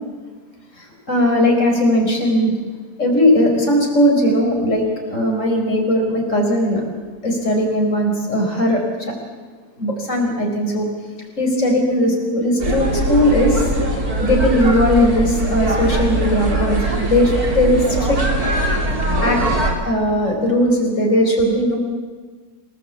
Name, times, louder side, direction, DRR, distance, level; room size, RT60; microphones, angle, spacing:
voice 1, 0.8-2.5 3.0-6.8 7.2-9.1 9.8-10.9 11.4-13.7 14.2-18.2 19.2-19.4 19.8-21.8, left 1 dB, 55° left, 1 dB, 5.2 m, -18 dB
sound 1, 12.6-19.7, right 1 dB, 80° right, 4.2 m, -21 dB
28.0 x 18.5 x 8.4 m, 1.4 s
omnidirectional pair, 1.6 m